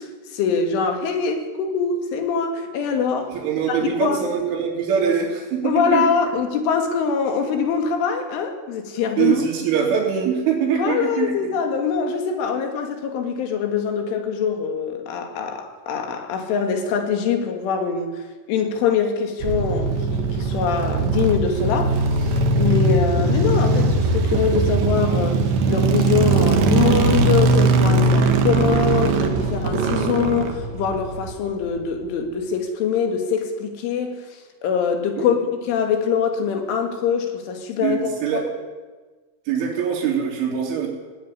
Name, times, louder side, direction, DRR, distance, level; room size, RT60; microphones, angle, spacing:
voice 1, 0.0-3.3 3.7-4.2 5.6-9.4 10.8-18.2 18.5-25.4 25.7-34.2 34.6-38.2, left 6 dB, 90° left, 5 dB, 4.8 m, -23 dB
voice 2, 3.3-6.1 9.2-11.5 35.2-35.4 37.8-38.5 39.5-40.9, right 7 dB, 85° right, -5 dB, 5.2 m, -23 dB
sound 1, 19.4-31.7, right 3 dB, 65° right, 3.2 m, -20 dB
17.5 x 17.5 x 9.8 m, 1.4 s
omnidirectional pair, 5.4 m